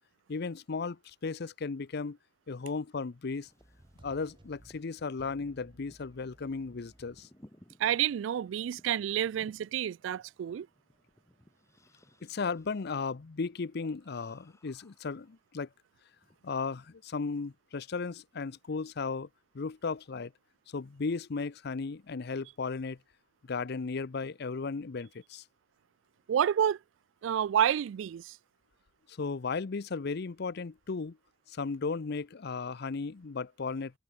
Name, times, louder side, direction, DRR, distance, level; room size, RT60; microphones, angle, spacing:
voice 1, 0.3-2.2 2.5-3.5 4.0-7.3 12.2-15.7 16.4-19.3 19.5-20.3 20.7-23.0 23.4-25.4 29.1-31.2 31.5-33.9, left 4 dB, 60° left, 0.6 m, -35 dB
sound 1, 3.3-15.7 16.1-16.9, left 1 dB, 15° left, 1.9 m, -62 dB
sound 2, 3.6-7.3 7.8-7.9, right 1 dB, 25° right, 1.2 m, -59 dB
voice 2, 7.8-10.7 26.3-26.8 27.2-28.4, right 9 dB, 75° right, 0.3 m, -29 dB
head